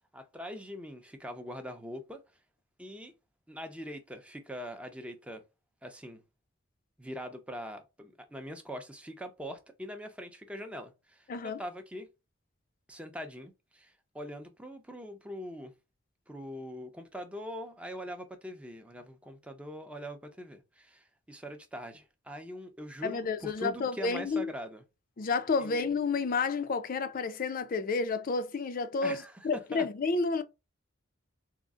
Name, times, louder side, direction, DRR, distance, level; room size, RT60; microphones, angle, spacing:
voice 1, 0.1-2.2 2.8-3.1 3.5-5.4 5.8-6.2 7.0-12.1 12.9-15.7 16.3-24.8 25.6-25.8 29.0-29.9, equal, 5° right, 0.6 m, -42 dB
voice 2, 11.3-11.6 23.0-24.5 25.2-30.4, left 4 dB, 45° left, 0.4 m, -30 dB
3.7 x 2.1 x 3.6 m
head